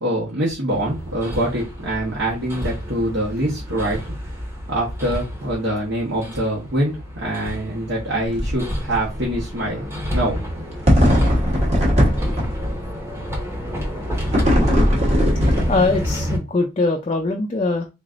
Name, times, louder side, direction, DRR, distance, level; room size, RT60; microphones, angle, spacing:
voice 1, 0.0-4.0 4.7-10.4, right 1 dB, 75° right, 1.1 m, -24 dB
Hammer, 0.7-16.4, equal, 15° right, 0.9 m, -30 dB
sound 1, 8.2-8.6 8.9-9.0 10.9-12.8 14.3-16.1, equal, 35° right, 1.1 m, -18 dB
voice 2, 15.4-17.9, left 3 dB, 30° left, 0.4 m, -22 dB
3.7 x 3.2 x 2.5 m
head